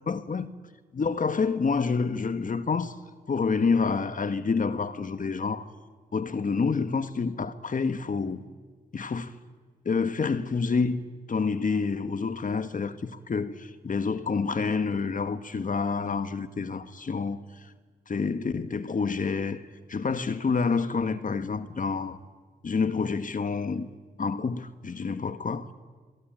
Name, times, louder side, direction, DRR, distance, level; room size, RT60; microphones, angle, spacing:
voice 1, 0.1-0.5 0.9-2.9 3.3-5.6 6.1-8.4 8.9-9.3 9.9-11.0 11.3-17.4 18.1-19.6 19.9-22.2 22.6-23.9 24.2-25.7, left 5 dB, 55° left, 1.6 m, -28 dB
27.5 x 22.5 x 9.1 m
cardioid pair, 55°, 17 cm